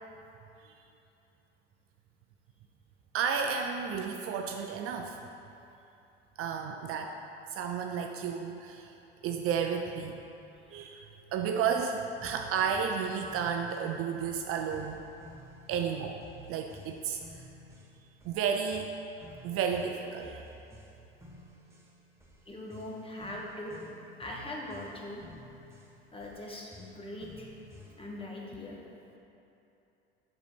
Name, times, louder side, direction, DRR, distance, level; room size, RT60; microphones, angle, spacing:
voice 1, 3.1-5.2 6.4-7.1 7.5-8.9 9.2-10.2 10.7-15.0 15.7-16.2 16.5-17.4 18.2-18.9 19.4-20.5, right 6 dB, 45° right, 3 dB, 0.6 m, -32 dB
sound 1, 12.2-28.2, equal, 10° right, 1.5 m, -53 dB
voice 2, 22.5-23.8 24.2-25.2 26.1-27.5 28.0-28.8, left 1 dB, 15° left, -2 dB, 1.4 m, -41 dB
6.7 x 6.6 x 4.4 m, 2.8 s
hypercardioid pair, 75°, 32 cm